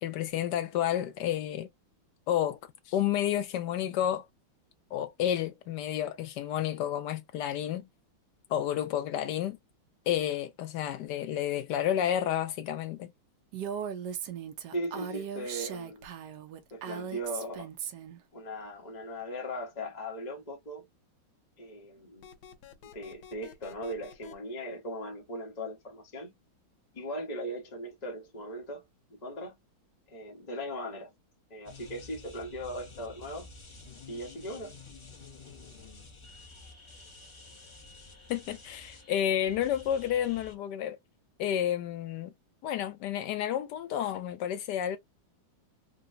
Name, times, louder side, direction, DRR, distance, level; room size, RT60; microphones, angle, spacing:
voice 1, 0.0-1.7 2.3-4.3 4.9-7.9 8.5-9.6 10.1-13.1 38.3-41.0 41.4-42.3 42.6-45.0, left 10 dB, 75° left, 1.0 m, -30 dB
Female speech woman speaking, 13.5-18.2, right 8 dB, 65° right, 1.1 m, -38 dB
voice 2, 14.7-16.1 16.7-17.7 18.3-20.9 21.6-22.3 22.9-26.3 26.9-28.8 29.1-29.6 30.1-31.1 31.5-33.5 34.1-34.8, equal, 30° left, 0.8 m, -38 dB
sound 1, 22.2-24.3, left 8 dB, 90° left, 1.5 m, -50 dB
sound 2, 31.6-40.5, left 3 dB, 50° left, 0.3 m, -50 dB
3.9 x 2.2 x 2.5 m
omnidirectional pair, 2.2 m